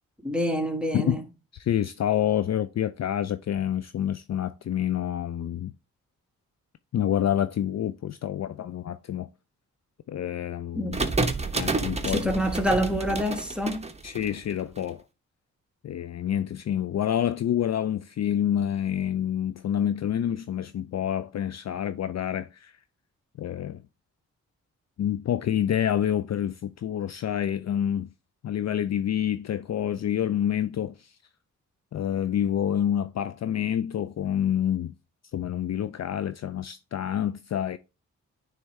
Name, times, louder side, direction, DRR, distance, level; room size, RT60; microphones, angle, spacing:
voice 1, 0.2-1.2 10.7-11.1 12.1-13.9, equal, 5° right, 1.3 m, -27 dB
voice 2, 1.5-5.7 6.9-9.3 10.1-11.0 11.5-12.3 14.0-15.0 15.8-22.8 23.4-23.8 25.0-28.1 28.4-31.2 31.9-34.9 35.3-37.8, left 10 dB, 50° left, 0.4 m, -27 dB
sound 1, 10.9-14.8, right 3 dB, 20° right, 0.9 m, -29 dB
9.4 x 3.4 x 3.2 m
supercardioid pair, 45°, 35 cm